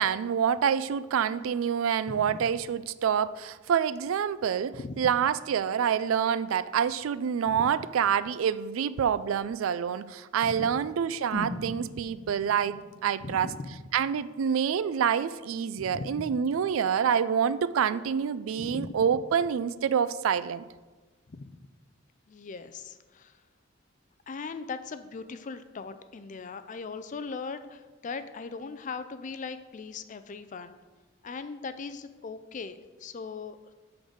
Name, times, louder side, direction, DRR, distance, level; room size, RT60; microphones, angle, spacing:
voice 1, 0.0-13.5 13.9-20.6, right 7 dB, 85° right, 15 dB, 0.3 m, -27 dB
voice 2, 2.1-2.4 4.7-5.1 7.4-7.7 10.4-10.8 13.2-13.8 15.8-16.4 18.6-19.0 21.3-21.5 22.3-23.4 24.3-30.8 31.2-33.7, left 4 dB, 40° left, 11 dB, 0.4 m, -39 dB
sound 1, 11.3-15.3 15.6-15.7, equal, 70° right, 1.5 m, -41 dB
8.5 x 3.9 x 6.3 m, 1.3 s
head